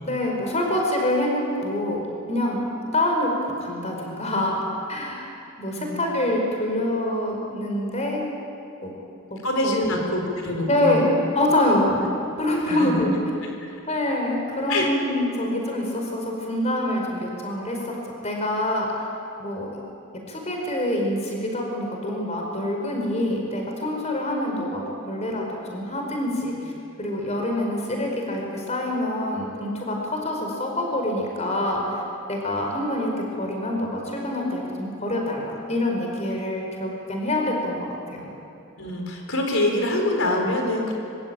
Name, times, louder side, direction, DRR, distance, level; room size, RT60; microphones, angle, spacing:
voice 1, 0.0-2.0 2.3-2.6 2.9-4.6 4.9-5.3 5.6-8.2 8.8-8.9 9.3-9.8 10.7-11.1 11.4-11.9 12.4-13.1 13.9-18.0 18.2-18.9 19.4-19.7 20.3-25.4 25.7-26.5 27.0-30.0 30.2-32.0 32.3-38.3, left 1 dB, 30° left, 0 dB, 5.1 m, -26 dB
voice 2, 5.7-6.0 9.4-11.1 11.9-12.0 12.7-13.0 13.6-13.7 14.7-14.9 38.8-40.9, left 1 dB, 65° left, 2 dB, 4.5 m, -25 dB
24.5 x 24.0 x 9.0 m, 2.7 s
head